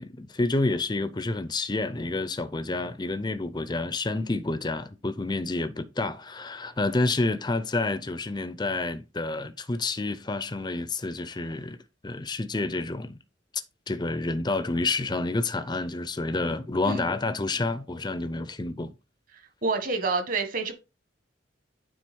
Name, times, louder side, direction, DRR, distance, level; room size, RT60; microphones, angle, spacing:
voice 1, 0.0-11.8 12.0-13.2 13.9-18.9, left 2 dB, 25° left, 0.6 m, -29 dB
voice 2, 19.6-20.7, right 4 dB, 50° right, 1.7 m, -28 dB
9.3 x 4.1 x 4.5 m
head